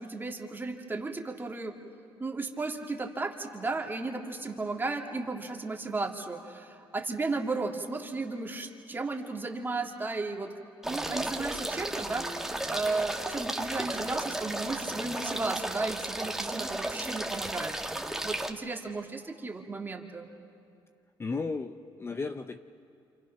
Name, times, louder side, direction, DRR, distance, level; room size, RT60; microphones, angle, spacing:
voice 1, 0.0-1.7 2.2-10.5 10.8-17.7 18.2-20.3, right 3 dB, 20° right, 2 dB, 2.1 m, -34 dB
sound 1, 10.8-18.5, right 1 dB, 5° right, 1.5 m, -34 dB
voice 2, 21.2-22.6, left 4 dB, 25° left, 8 dB, 0.7 m, -34 dB
28.5 x 28.0 x 5.8 m, 2.5 s
cardioid pair, 105°, 9 cm